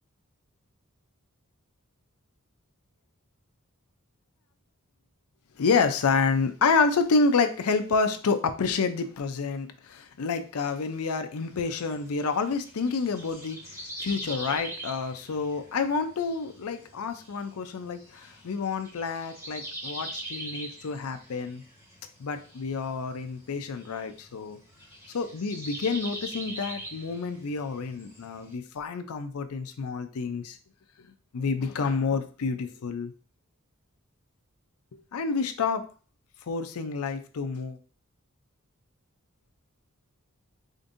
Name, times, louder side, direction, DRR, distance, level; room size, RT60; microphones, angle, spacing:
voice 1, 5.6-21.6 22.2-24.6 25.1-30.6 31.0-31.1 31.3-33.1 34.9-35.8 36.5-37.8, left 4 dB, 85° left, 8 dB, 0.5 m, -28 dB
sound 1, 11.4-28.5, right 1 dB, 15° right, 1.3 m, -43 dB
5.1 x 2.6 x 2.5 m, 0.39 s
head